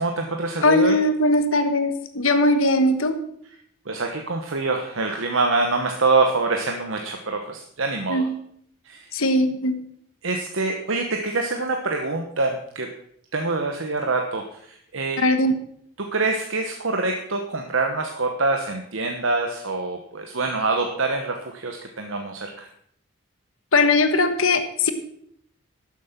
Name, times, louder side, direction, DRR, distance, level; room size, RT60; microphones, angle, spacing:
voice 1, 0.0-1.0 3.4-3.6 3.9-8.3 8.8-9.1 10.2-12.9 13.3-15.2 16.0-22.7, right 3 dB, 75° right, 4 dB, 1.1 m, -25 dB
voice 2, 0.6-3.2 8.1-8.3 9.1-9.8 15.2-15.5 23.7-24.9, left 2 dB, 85° left, 9 dB, 1.4 m, -19 dB
12.0 x 7.7 x 5.9 m, 0.66 s
head